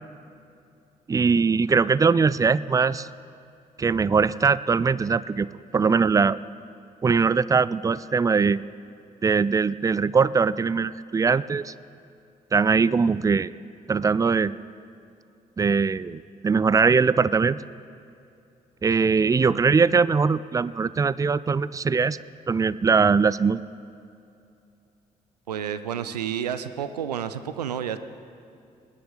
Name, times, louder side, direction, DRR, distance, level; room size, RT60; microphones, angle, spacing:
voice 1, 1.1-3.1 3.8-5.5 5.7-6.4 7.0-8.6 9.2-11.7 12.5-13.5 13.9-14.5 15.6-17.6 18.8-22.2 22.5-23.6, right 5 dB, 15° right, 18 dB, 0.4 m, -21 dB
voice 2, 25.5-28.0, right 9 dB, 85° right, 12 dB, 0.5 m, -30 dB
20.5 x 10.5 x 3.8 m, 2.6 s
figure-of-eight pair, 40°, 20 cm